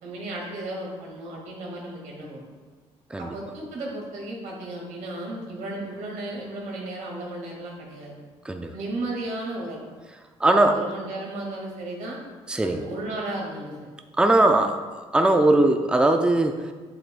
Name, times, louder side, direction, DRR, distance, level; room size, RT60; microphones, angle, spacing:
voice 1, 0.0-2.4 3.2-8.2 8.7-9.8 10.5-12.2 12.6-13.9, right 1 dB, 80° right, -2 dB, 1.9 m, -34 dB
voice 2, 10.4-10.8 12.5-12.8 14.2-16.7, right 2 dB, 5° right, 5 dB, 0.5 m, -20 dB
7.8 x 7.5 x 2.2 m, 1.4 s
cardioid pair, 75°, 13 cm